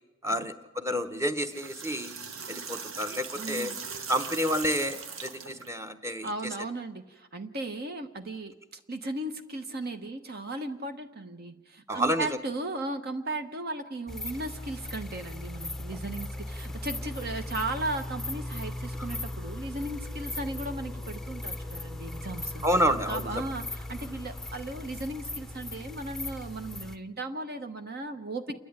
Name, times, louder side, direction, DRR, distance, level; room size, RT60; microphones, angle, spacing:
voice 1, 0.2-2.1 2.5-3.7 4.1-6.3 11.9-12.4 22.6-23.3, equal, 15° right, 8 dB, 1.0 m, -29 dB
sound 1, 1.3-5.7, right 5 dB, 70° right, 1.4 m, -40 dB
voice 2, 3.4-3.8 6.2-22.7 23.1-28.6, right 2 dB, 50° right, 6 dB, 1.1 m, -36 dB
sound 2, 14.1-27.0, left 1 dB, ahead, 0.7 m, -38 dB
28.0 x 11.0 x 9.6 m, 1.1 s
head